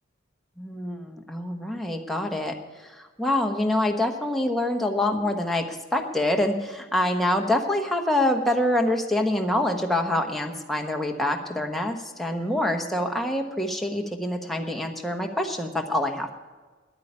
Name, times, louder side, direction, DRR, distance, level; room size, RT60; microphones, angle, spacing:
voice 1, 0.6-16.3, left 1 dB, ahead, 2 dB, 1.2 m, -26 dB
10.5 x 8.8 x 9.7 m, 1.3 s
head